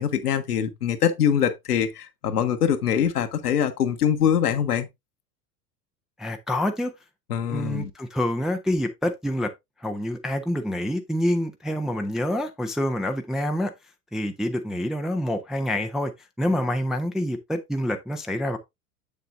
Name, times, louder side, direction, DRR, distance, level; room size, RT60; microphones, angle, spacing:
voice 1, 0.0-4.9 7.3-7.9, left 8 dB, 70° left, 1.2 m, -23 dB
voice 2, 6.2-6.9 7.4-9.5 9.8-13.7 14.1-16.1 16.4-18.6, left 1 dB, ahead, 0.4 m, -27 dB
7.8 x 7.0 x 2.5 m
figure-of-eight pair, 80°, 47 cm